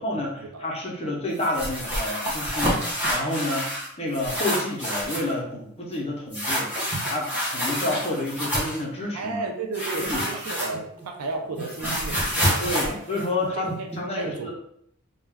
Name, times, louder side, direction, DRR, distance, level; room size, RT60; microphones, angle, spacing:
voice 1, 0.0-9.4 9.9-10.3 12.6-13.7 14.0-14.5, left 2 dB, 30° left, -2 dB, 0.6 m, -29 dB
sound 1, 1.4-3.9 4.1-5.3 6.3-8.8 9.7-11.0 11.3-14.0, equal, 5° right, 0.8 m, -28 dB
voice 2, 9.1-13.0 13.5-13.9 14.1-14.5, right 3 dB, 90° right, 3 dB, 0.4 m, -33 dB
2.2 x 2.2 x 3.3 m, 0.70 s
head